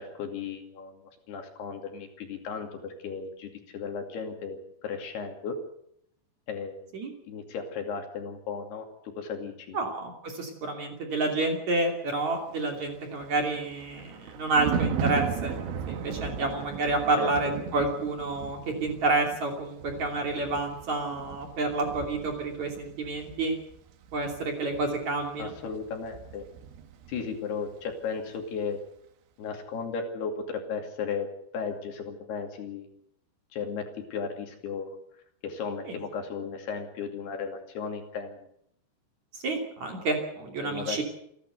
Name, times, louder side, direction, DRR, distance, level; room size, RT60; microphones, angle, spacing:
voice 1, 0.0-5.6 6.5-6.9 7.3-9.8 17.1-17.5 25.4-26.4 27.1-28.8 29.4-31.3 31.5-32.9 33.5-35.0 35.4-38.4 40.6-41.0, left 5 dB, 65° left, 4 dB, 4.4 m, -35 dB
voice 2, 9.7-15.6 15.9-23.5 24.1-25.5 35.9-36.0 39.3-41.0, right 3 dB, 45° right, 3 dB, 3.7 m, -29 dB
Thunder, 12.8-27.4 27.7-27.9, right 6 dB, 90° right, 4.1 m, -37 dB
28.5 x 12.0 x 8.1 m, 0.70 s
omnidirectional pair, 5.2 m